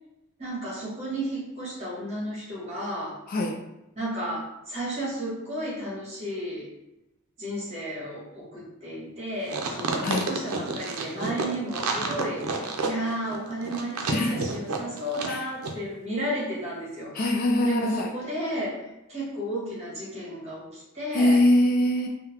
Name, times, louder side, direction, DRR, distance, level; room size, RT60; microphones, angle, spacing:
voice 1, 0.4-3.2 3.9-6.7 7.4-17.1 17.6-21.4, right 1 dB, 30° right, -6 dB, 1.4 m, -33 dB
sound 1, 9.5-15.4 15.6-15.7, right 3 dB, 80° right, 0.5 m, -30 dB
voice 2, 14.1-14.4 15.3-15.5 17.1-18.1 21.1-22.1, left 1 dB, 40° left, 2 dB, 0.3 m, -23 dB
3.8 x 2.1 x 2.9 m, 0.91 s
head